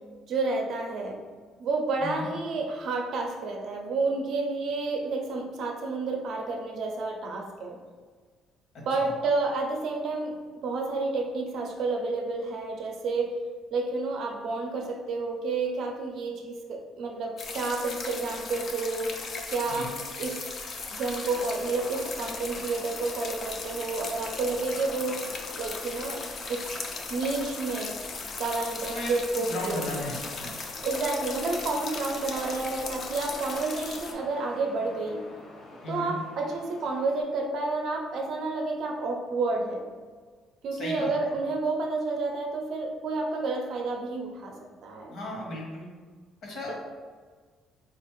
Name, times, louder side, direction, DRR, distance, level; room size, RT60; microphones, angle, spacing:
voice 1, 0.3-1.2 1.6-7.8 8.9-13.3 13.7-19.1 19.5-19.9 20.2-20.4 20.9-25.3 25.6-26.6 27.1-28.0 28.4-29.9 30.8-35.2 35.9-39.9 40.6-44.5 44.8-45.1 46.7-46.8, right 3 dB, 55° right, 1 dB, 0.5 m, -30 dB
voice 2, 8.7-9.1 19.7-19.9 28.9-30.5 35.8-36.1 40.7-41.1 45.1-45.9 46.4-46.8, left 1 dB, 60° left, -2 dB, 1.0 m, -36 dB
sound 1, 17.4-34.1, left 4 dB, 40° left, 0.4 m, -37 dB
sound 2, 21.2-37.2, left 1 dB, 85° left, 0.8 m, -47 dB
4.1 x 2.4 x 3.1 m, 1.5 s
cardioid pair, 155°, 0 cm